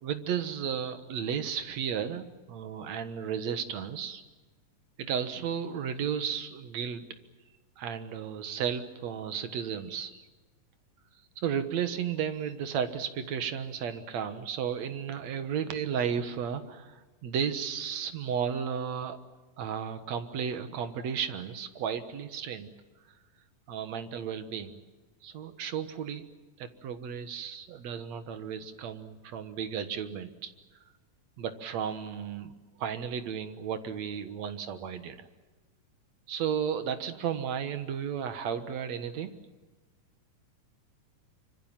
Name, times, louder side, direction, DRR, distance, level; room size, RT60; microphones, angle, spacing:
voice 1, 0.0-4.2 5.0-7.0 7.8-10.2 11.4-19.2 19.6-22.7 23.7-24.8 25.2-26.2 26.6-30.5 31.4-32.5 32.8-35.3 36.3-39.4, right 8 dB, 60° right, 9 dB, 2.4 m, -34 dB
26.0 x 24.5 x 7.4 m, 1.2 s
omnidirectional pair, 3.8 m